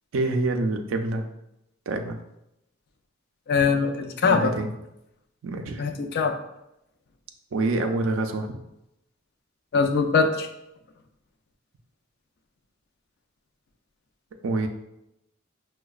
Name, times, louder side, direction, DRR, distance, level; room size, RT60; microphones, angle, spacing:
voice 1, 0.1-1.2 1.9-2.2 4.2-4.7 5.4-5.8 7.5-8.6 14.4-14.7, right 2 dB, 70° right, 5 dB, 0.4 m, -26 dB
voice 2, 3.5-4.5 5.8-6.3 9.7-10.5, left 5 dB, 55° left, 5 dB, 0.4 m, -22 dB
4.8 x 2.2 x 2.3 m, 0.86 s
head